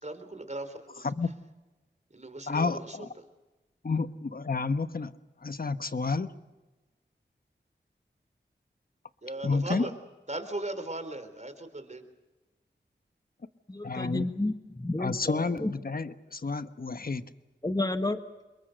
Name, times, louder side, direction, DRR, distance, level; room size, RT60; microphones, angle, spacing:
voice 1, 0.0-1.1 2.1-3.3 3.9-4.0 9.2-9.9 10.3-12.1, right 2 dB, 40° right, 9 dB, 3.8 m, -38 dB
voice 2, 2.5-3.1 3.8-5.1 5.4-6.3 9.4-9.8 13.8-14.2 15.0-17.2, left 4 dB, 55° left, 11 dB, 1.2 m, -30 dB
voice 3, 13.7-15.7 17.6-18.2, left 2 dB, 20° left, 8 dB, 1.5 m, -31 dB
27.0 x 22.5 x 6.6 m, 1.1 s
cardioid pair, 45°, 19 cm